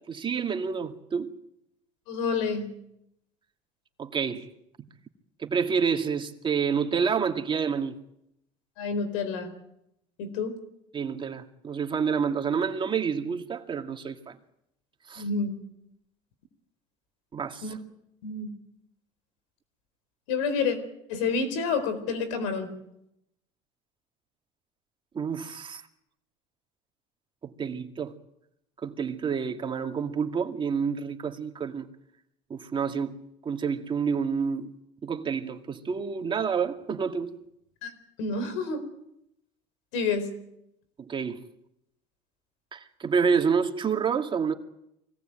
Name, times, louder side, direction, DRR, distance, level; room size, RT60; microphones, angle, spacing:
voice 1, 0.0-1.3 4.0-4.5 4.8-4.9 5.4-8.0 10.9-14.4 15.1-15.3 17.3-17.8 25.1-25.8 27.4-28.2 28.8-31.9 32.5-34.7 35.0-37.3 41.0-41.4 42.7-44.5, right 6 dB, 30° right, 2.3 m, -28 dB
voice 2, 2.1-2.7 8.8-9.5 10.2-10.6 15.2-15.5 17.6-17.8 18.2-18.5 20.3-20.8 21.1-22.7 37.8-37.9 38.2-38.8 39.9-40.3, left 4 dB, 85° left, 4.4 m, -28 dB
24.5 x 18.5 x 9.1 m
supercardioid pair, 95°, 16 cm